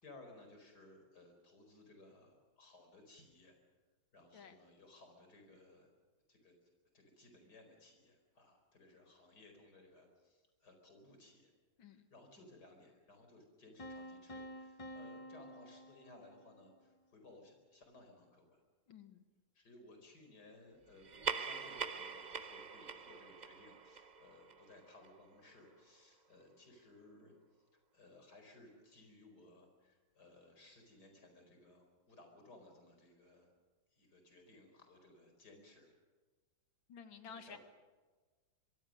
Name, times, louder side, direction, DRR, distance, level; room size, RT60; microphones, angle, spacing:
voice 1, 0.0-3.6 4.1-5.9 6.3-6.6 6.9-11.5 11.9-18.6 19.5-27.3 27.9-33.5 33.9-35.9 37.3-37.6, left 2 dB, 55° left, 4 dB, 5.0 m, -60 dB
sound 1, 13.8-16.7, equal, 30° left, 0.7 m, -50 dB
voice 2, 18.9-19.3 36.9-37.6, left 6 dB, 85° left, 8 dB, 2.3 m, -53 dB
sound 2, 21.0-25.9, right 5 dB, 80° right, 0.4 m, -44 dB
25.0 x 22.5 x 6.5 m, 1.3 s
omnidirectional pair, 2.1 m